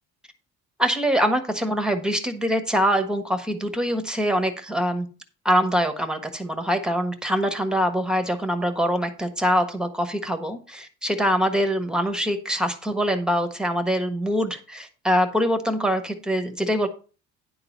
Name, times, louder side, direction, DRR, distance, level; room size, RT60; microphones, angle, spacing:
voice 1, 0.8-5.1 5.4-16.9, equal, ahead, 7 dB, 1.4 m, -24 dB
10.5 x 3.9 x 7.2 m, 0.35 s
cardioid pair, 130°, 32 cm